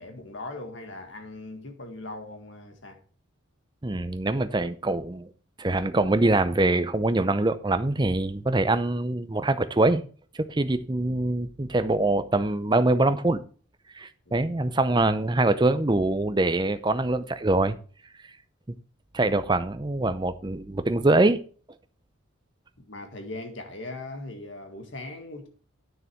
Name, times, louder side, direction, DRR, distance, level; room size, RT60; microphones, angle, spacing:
voice 1, 0.0-3.0 14.3-14.4 19.2-19.3 22.9-25.5, left 2 dB, 60° left, 1.7 m, -39 dB
voice 2, 3.8-5.3 5.6-10.0 10.5-13.4 14.0-17.8 18.7-18.8 19.1-21.4, right 2 dB, 20° right, 0.5 m, -24 dB
9.5 x 6.5 x 4.5 m
head